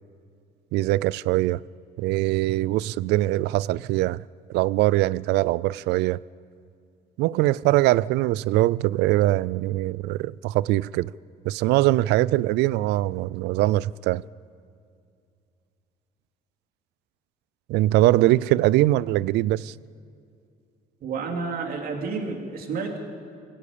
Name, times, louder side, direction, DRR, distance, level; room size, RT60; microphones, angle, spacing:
voice 1, 0.7-1.6 2.0-4.2 4.5-6.2 7.2-11.1 11.5-14.2 17.7-19.7, right 16 dB, 85° right, 0.4 m, -22 dB
voice 2, 21.0-23.0, right 4 dB, 60° right, 3.2 m, -30 dB
24.0 x 17.0 x 6.9 m
cardioid pair, 110°, 17 cm